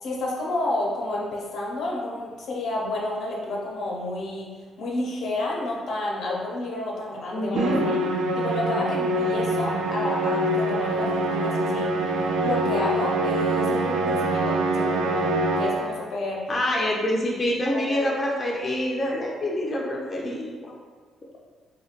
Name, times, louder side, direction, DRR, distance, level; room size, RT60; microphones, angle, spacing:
voice 1, 0.0-8.0 8.4-11.9 12.4-16.5 17.7-18.0, left 2 dB, 70° left, -3 dB, 0.7 m, -30 dB
voice 2, 7.3-7.8 16.5-20.7, left 1 dB, 30° left, -3 dB, 0.5 m, -26 dB
Musical instrument, 7.6-16.1, right 1 dB, 80° right, 0.3 m, -24 dB
3.2 x 3.1 x 2.4 m, 1.5 s
cardioid pair, 90°, 0 cm